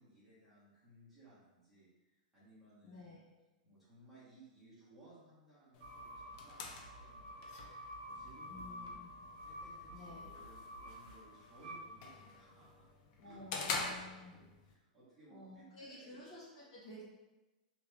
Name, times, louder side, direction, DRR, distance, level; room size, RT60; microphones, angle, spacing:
voice 1, 0.0-3.2 3.6-7.8 8.1-9.0 9.4-12.9 13.2-16.2, right 2 dB, 5° right, -13 dB, 1.1 m, -62 dB
voice 2, 2.8-3.2 8.5-8.9 9.9-10.3 13.2-14.4 15.3-17.0, left 2 dB, 45° left, -7 dB, 1.4 m, -52 dB
sound 1, 5.7-14.7, left 4 dB, 30° left, 0.4 m, -47 dB
sound 2, 5.8-12.6, equal, 85° right, 0.5 m, -50 dB
2.9 x 2.9 x 3.3 m, 1.1 s
supercardioid pair, 175°, 5 cm